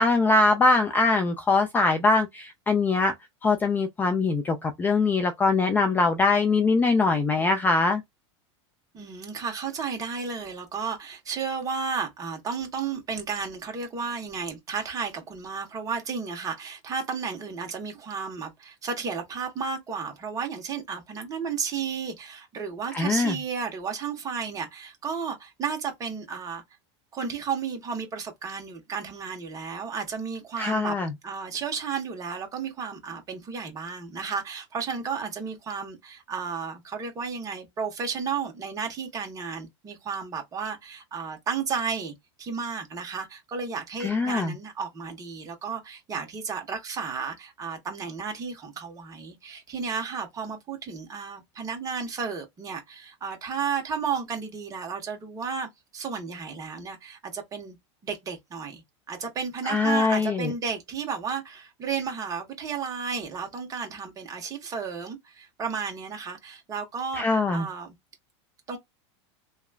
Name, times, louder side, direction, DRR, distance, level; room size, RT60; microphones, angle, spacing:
voice 1, 0.0-3.1 3.4-8.0 22.9-23.4 30.6-31.1 44.0-44.5 59.6-60.5 67.2-67.7, left 3 dB, 15° left, 0.3 m, -22 dB
voice 2, 8.9-26.6 27.1-31.0 31.2-57.8 58.0-58.8 59.1-67.9 68.7-68.8, right 6 dB, 25° right, 1.1 m, -33 dB
3.0 x 2.2 x 2.3 m
supercardioid pair, 145°, 15 cm